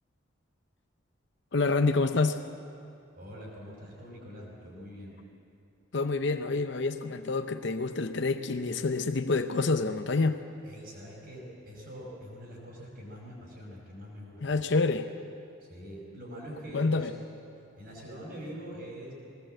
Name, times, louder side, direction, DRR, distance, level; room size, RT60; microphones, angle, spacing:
voice 1, 1.5-2.4 5.9-10.4 14.4-15.1 16.7-17.1, left 3 dB, 55° left, 7 dB, 0.7 m, -27 dB
voice 2, 3.2-5.1 10.6-14.6 15.6-17.1 17.8-19.1, equal, 50° right, -4 dB, 5.2 m, -44 dB
20.5 x 18.5 x 7.8 m, 2.5 s
head